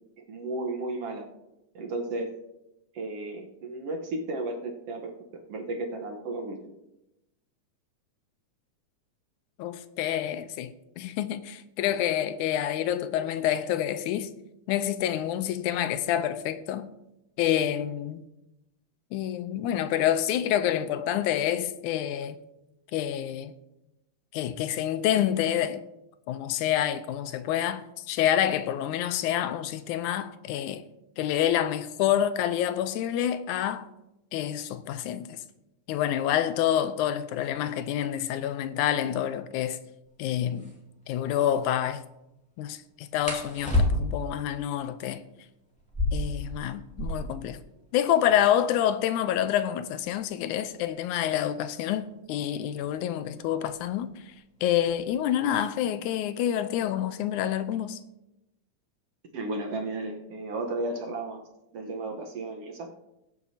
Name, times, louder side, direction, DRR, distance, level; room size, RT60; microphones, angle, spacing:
voice 1, 0.3-1.3 1.8-2.4 2.9-6.7 59.3-61.4 61.7-62.9, right 2 dB, 60° right, 1.8 m, -34 dB
voice 2, 9.6-14.3 14.7-16.9 17.4-18.2 19.1-22.4 22.9-23.5 24.3-25.8 26.3-30.9 31.2-33.9 34.3-35.4 35.9-39.8 40.2-40.7 41.1-42.0 42.6-45.2 46.1-47.6 47.9-54.1 54.6-58.0, left 11 dB, 85° left, 2.1 m, -27 dB
sound 1, 40.0-40.1 40.5-40.8 43.2-44.3 45.8-47.4 47.7-47.8 48.0-48.6 49.2-51.8 52.8-53.1 53.5-54.0 54.3-55.1, left 2 dB, 5° left, 1.9 m, -30 dB
21.5 x 7.8 x 2.8 m
omnidirectional pair, 3.4 m